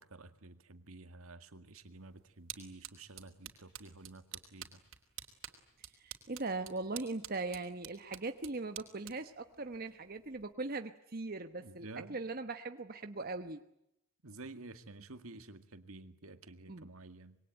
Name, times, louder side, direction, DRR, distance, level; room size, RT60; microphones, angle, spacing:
voice 1, 0.0-4.8 11.6-12.2 14.2-17.4, right 2 dB, 80° right, 9 dB, 2.0 m, -51 dB
sound 1, 1.8-10.5, right 11 dB, 60° right, 3.5 m, -51 dB
voice 2, 6.0-13.6 16.7-16.9, right 3 dB, 45° right, 8 dB, 1.1 m, -40 dB
26.5 x 22.5 x 9.2 m, 0.79 s
head